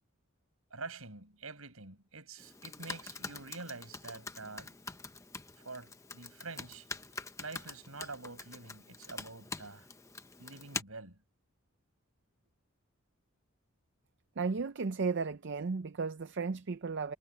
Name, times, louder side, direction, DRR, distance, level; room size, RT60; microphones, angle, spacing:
voice 1, 0.7-4.8 5.6-6.9 7.4-9.9 10.4-11.2, right 3 dB, 75° right, 7.0 m, -46 dB
Computer keyboard, 2.4-10.8, left 3 dB, 15° left, 0.9 m, -45 dB
voice 2, 14.4-17.1, right 4 dB, 55° right, 0.5 m, -34 dB
head